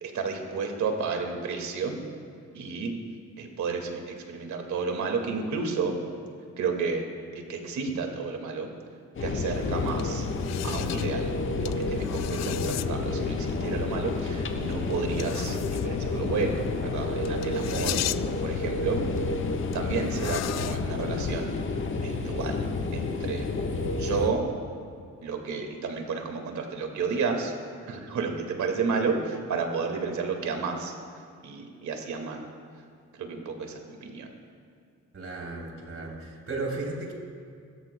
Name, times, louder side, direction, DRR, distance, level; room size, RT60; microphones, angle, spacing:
voice 1, 0.0-2.0 2.5-2.9 3.4-6.0 6.6-7.1 7.3-8.7 9.2-10.3 10.6-11.3 11.6-19.0 19.7-21.6 22.0-22.7 22.9-23.5 24.0-24.4 25.2-27.5 27.9-30.9 31.4-32.4 33.1-34.3, right 5 dB, 70° right, 3 dB, 2.0 m, -31 dB
sound 1, 9.1-24.3, left 3 dB, 40° left, 1.2 m, -30 dB
sound 2, 9.5-21.5, left 13 dB, 60° left, 0.5 m, -37 dB
voice 2, 35.1-37.1, right 2 dB, 50° right, -1 dB, 3.3 m, -35 dB
21.5 x 13.0 x 2.2 m, 2.3 s
cardioid pair, 90°, 30 cm